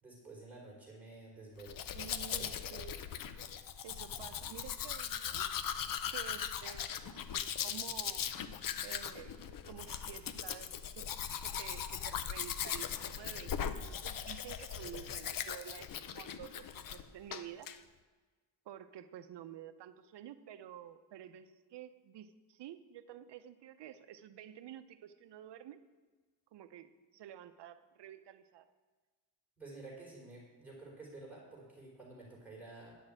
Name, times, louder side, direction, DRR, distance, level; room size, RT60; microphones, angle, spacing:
voice 1, 0.0-2.8 29.6-33.0, right 3 dB, 5° right, -5 dB, 4.0 m, -51 dB
Domestic sounds home sounds, 1.6-17.0 17.3-17.8, left 8 dB, 50° left, 0.6 m, -39 dB
voice 2, 1.9-3.0 3.8-5.5 6.1-8.3 8.8-9.4 9.7-11.1 11.4-17.7 18.7-25.8 26.5-28.7, right 10 dB, 70° right, 11 dB, 0.7 m, -50 dB
10.0 x 6.5 x 8.7 m, 1.4 s
wide cardioid pair, 170°, 43 cm